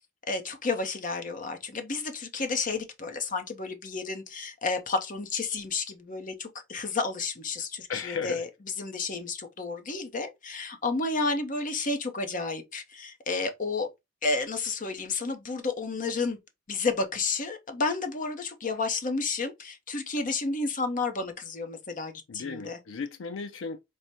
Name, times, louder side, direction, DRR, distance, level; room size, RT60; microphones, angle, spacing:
voice 1, 0.3-8.5 8.8-13.9 14.2-16.4 16.7-22.8, left 3 dB, 45° left, 0.7 m, -31 dB
voice 2, 7.9-8.4 22.3-23.8, left 5 dB, 75° left, 0.4 m, -35 dB
4.7 x 2.1 x 4.1 m
head